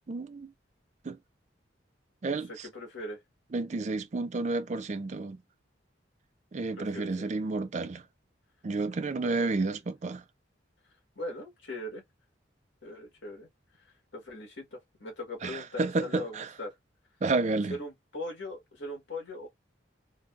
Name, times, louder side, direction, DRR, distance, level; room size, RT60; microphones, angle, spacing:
voice 1, 0.1-0.5 1.0-1.2 2.2-2.7 3.5-5.4 6.5-8.0 8.6-10.2 15.4-16.5 17.2-17.8, right 3 dB, 40° right, 0.4 m, -31 dB
voice 2, 2.5-3.2 6.8-7.3 9.2-9.5 11.2-12.0 12.8-13.5 14.1-16.8 17.7-19.5, left 1 dB, 75° left, 1.7 m, -40 dB
3.8 x 2.3 x 2.4 m
head